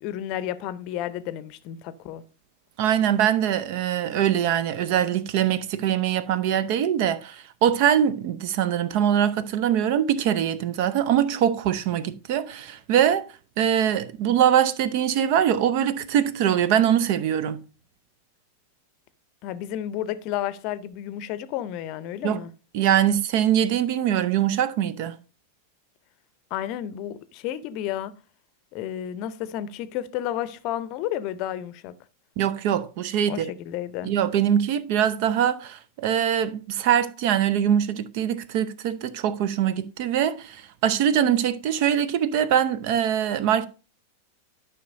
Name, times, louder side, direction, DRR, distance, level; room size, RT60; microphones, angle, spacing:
voice 1, 0.0-2.2 19.4-22.5 26.5-28.1 28.7-31.9 33.3-34.1, left 11 dB, 40° left, 0.7 m, -31 dB
voice 2, 2.8-13.2 13.6-17.6 22.2-22.4 22.7-25.2 32.4-33.5 34.0-43.7, right 10 dB, 45° right, 0.6 m, -23 dB
12.5 x 5.8 x 2.6 m
figure-of-eight pair, 90°, 0 cm